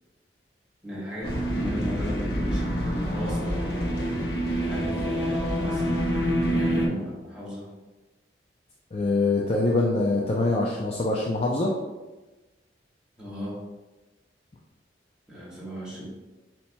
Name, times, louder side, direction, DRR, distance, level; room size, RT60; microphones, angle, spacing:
voice 1, 0.8-4.0 4.6-6.0 6.5-7.7 13.2-13.6 15.3-16.1, equal, 5° right, -8 dB, 1.2 m, -36 dB
sound 1, 1.2-6.9, equal, 55° left, 0.8 m, -27 dB
voice 2, 8.9-11.7, left 2 dB, 30° left, -3 dB, 0.4 m, -24 dB
7.1 x 2.9 x 2.2 m, 1.1 s
head